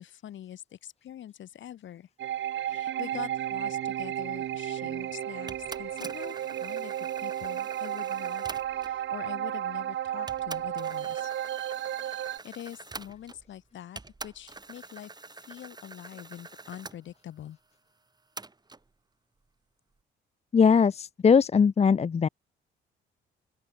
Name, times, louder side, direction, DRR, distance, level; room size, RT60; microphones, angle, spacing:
voice 1, 0.0-2.1 2.5-8.5 8.7-11.3 12.4-17.6, left 11 dB, 70° left, 7.7 m, -44 dB
sound 1, 2.2-12.4, right 11 dB, 70° right, 3.7 m, -33 dB
sound 2, 5.5-9.0 9.8-9.9 10.3-13.6 14.0-17.0 18.4-18.8, right 3 dB, 20° right, 3.0 m, -45 dB
voice 2, 20.5-22.3, left 6 dB, 30° left, 0.8 m, -20 dB
open air
cardioid pair, 90°, 20 cm